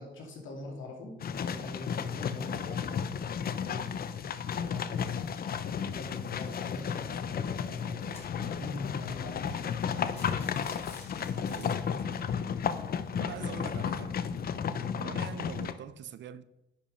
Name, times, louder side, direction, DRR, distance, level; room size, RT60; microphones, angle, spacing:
voice 1, 0.0-3.2 3.6-4.0 4.6-5.2 5.9-8.1 8.4-10.4 14.6-14.9, left 2 dB, 75° left, 2.8 m, -43 dB
sound 1, 1.2-15.7, left 7 dB, 50° left, 0.7 m, -33 dB
sound 2, 7.8-8.7 9.2-9.3 9.6-9.7 10.0-12.2, left 2 dB, 35° left, 3.8 m, -52 dB
voice 2, 11.4-11.8 13.1-14.2 15.0-16.4, right 10 dB, 65° right, 0.6 m, -44 dB
10.0 x 5.4 x 5.6 m
cardioid pair, 90°, 20 cm